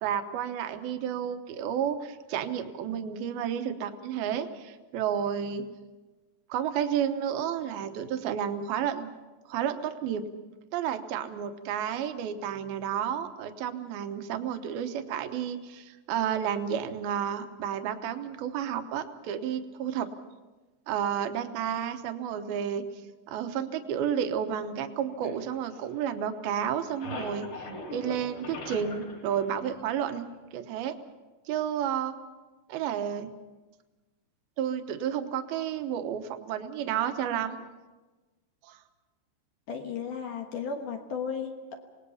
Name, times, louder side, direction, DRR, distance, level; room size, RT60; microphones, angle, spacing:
voice 1, 0.0-5.6 6.5-9.1 9.5-10.3 10.7-20.1 20.9-22.8 23.3-27.5 27.9-30.3 30.5-31.0 31.5-32.1 32.7-33.3 34.6-37.6 38.6-38.8, right 9 dB, 70° right, 8 dB, 2.6 m, -31 dB
sound 1, 25.2-26.4 26.7-30.4, left 2 dB, 45° left, 4.4 m, -41 dB
voice 2, 39.7-41.7, left 6 dB, 65° left, 4 dB, 2.3 m, -34 dB
27.0 x 19.5 x 5.7 m, 1.2 s
omnidirectional pair, 5.2 m